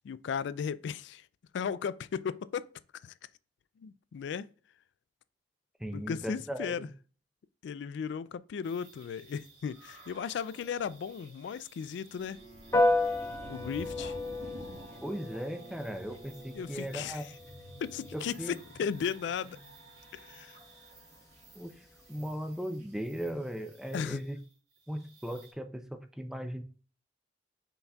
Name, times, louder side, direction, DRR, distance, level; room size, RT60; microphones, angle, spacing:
voice 1, 0.0-1.3 1.5-2.7 3.0-3.1 3.8-4.5 5.9-6.9 7.6-12.4 13.5-14.2 16.5-17.2 17.8-19.6 20.1-20.5 23.9-24.2, left 7 dB, 70° left, 0.3 m, -36 dB
voice 2, 5.8-6.9 15.0-17.2 18.1-18.6 21.6-24.4 24.9-26.6, equal, 5° right, 0.4 m, -38 dB
sound 1, 8.6-25.5, right 2 dB, 65° right, 2.2 m, -52 dB
Bowed string instrument, 12.1-17.3, right 1 dB, 40° right, 1.4 m, -55 dB
Piano, 12.7-22.5, left 2 dB, 20° left, 0.9 m, -35 dB
5.7 x 4.0 x 2.3 m
head